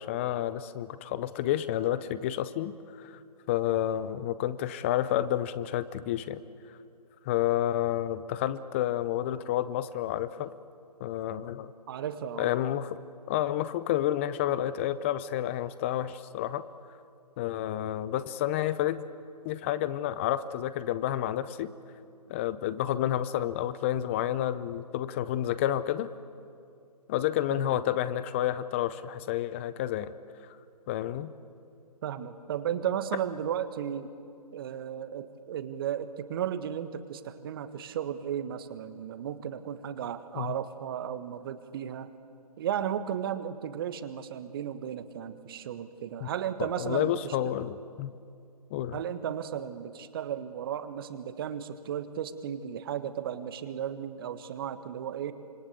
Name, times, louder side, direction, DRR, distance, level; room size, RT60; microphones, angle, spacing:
voice 1, 0.0-3.2 3.5-6.4 7.3-10.5 11.0-11.7 12.4-13.0 13.3-16.6 17.4-19.0 19.4-21.7 22.3-26.1 27.1-30.1 30.9-31.3 40.4-40.5 46.2-46.3 46.6-48.1 48.7-49.0, left 12 dB, 20° left, 15 dB, 0.6 m, -30 dB
voice 2, 11.9-12.5 27.5-27.8 32.0-34.1 34.5-42.1 42.6-47.3 48.9-55.3, right 9 dB, 35° right, 11 dB, 1.5 m, -34 dB
26.5 x 24.5 x 8.3 m, 2.5 s
figure-of-eight pair, 140°, 21 cm